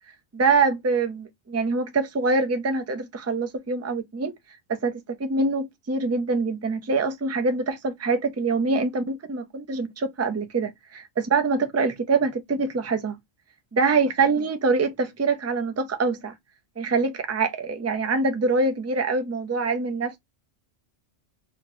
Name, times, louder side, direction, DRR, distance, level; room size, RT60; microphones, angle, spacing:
voice 1, 0.3-4.3 4.7-13.2 13.7-16.3 16.8-20.2, right 4 dB, 20° right, 0.4 m, -24 dB
2.9 x 2.8 x 3.8 m
omnidirectional pair, 1.1 m